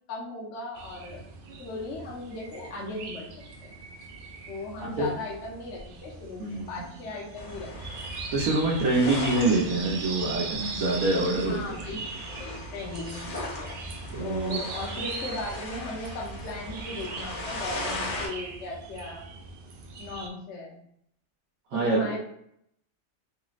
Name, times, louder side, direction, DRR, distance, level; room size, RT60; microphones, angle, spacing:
voice 1, 0.1-1.2 1.6-3.3 3.6-3.7 4.5-8.0 11.4-12.0 12.4-13.7 14.2-19.3 20.0-20.8 21.7-22.2, left 2 dB, 60° left, -3 dB, 1.0 m, -37 dB
sound 1, 0.8-20.3, right 4 dB, 70° right, 0.5 m, -40 dB
voice 2, 6.4-6.7 8.3-11.9 14.1-14.6 21.7-22.2, right 2 dB, 90° right, -5 dB, 1.1 m, -26 dB
sound 2, 7.3-18.3, left 1 dB, 35° left, 0.7 m, -38 dB
3.2 x 2.4 x 3.0 m, 0.72 s
omnidirectional pair, 1.4 m